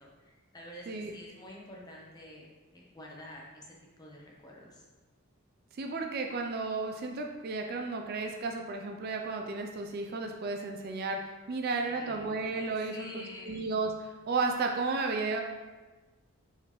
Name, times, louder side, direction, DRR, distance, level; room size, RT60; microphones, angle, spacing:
voice 1, 0.0-4.8 11.9-12.3 12.9-13.6, left 1 dB, 15° left, -2 dB, 0.7 m, -49 dB
voice 2, 5.7-15.4, right 3 dB, 45° right, 3 dB, 0.3 m, -33 dB
4.5 x 3.7 x 3.0 m, 1.2 s
head